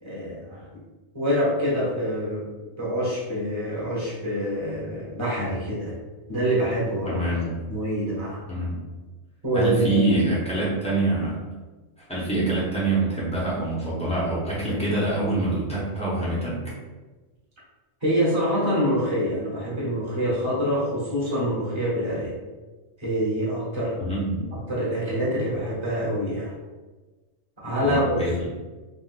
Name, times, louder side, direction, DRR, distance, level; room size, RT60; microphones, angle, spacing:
voice 1, 0.0-0.7 1.1-2.5 2.8-6.0 6.3-8.4 9.4-10.0 18.0-22.4 23.0-24.0 24.5-26.5 27.6-28.2, equal, 25° right, -7 dB, 1.0 m, -26 dB
voice 2, 7.0-7.5 8.5-8.8 9.5-11.4 12.0-16.6 24.0-24.4 27.8-28.5, right 2 dB, 5° left, -8 dB, 0.8 m, -25 dB
3.6 x 2.4 x 2.5 m, 1.2 s
omnidirectional pair, 1.3 m